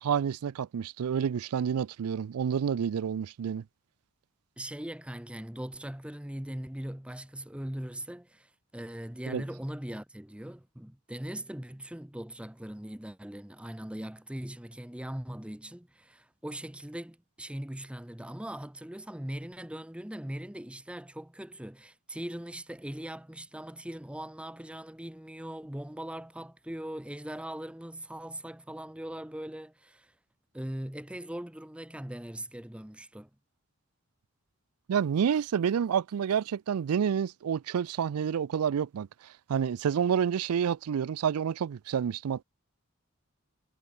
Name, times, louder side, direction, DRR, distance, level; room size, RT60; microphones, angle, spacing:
voice 1, 0.0-3.6 9.3-9.4 34.9-39.1 39.5-42.4, right 8 dB, 90° right, 0.4 m, -29 dB
voice 2, 4.6-30.1 30.5-33.3, right 1 dB, 5° right, 0.7 m, -40 dB
head